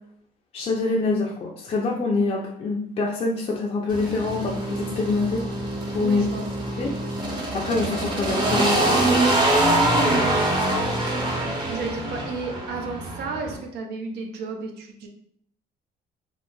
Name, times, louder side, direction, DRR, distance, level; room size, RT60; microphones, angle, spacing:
voice 1, 0.5-5.4 5.9-6.2 6.8-6.9 7.5-9.1, left 3 dB, 35° left, -2 dB, 0.4 m, -25 dB
sound 1, 3.9-13.6, right 1 dB, 25° right, 0.7 m, -24 dB
voice 2, 6.0-6.5 9.9-10.8 11.3-15.1, right 4 dB, 75° right, 3 dB, 0.6 m, -33 dB
3.9 x 2.1 x 2.2 m, 0.71 s
cardioid pair, 110°, 17 cm